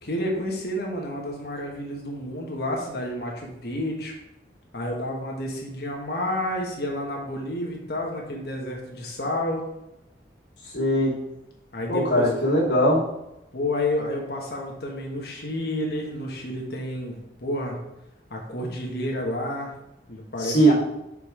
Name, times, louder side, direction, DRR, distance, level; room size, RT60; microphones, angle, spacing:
voice 1, 0.0-4.1 4.7-9.6 11.7-12.3 13.5-17.8 18.3-19.7 20.1-20.7, left 1 dB, 60° left, -1 dB, 1.3 m, -30 dB
voice 2, 10.7-11.2 11.9-13.0 20.4-20.7, right 1 dB, 85° left, -5 dB, 2.5 m, -20 dB
5.4 x 5.3 x 4.8 m, 0.88 s
head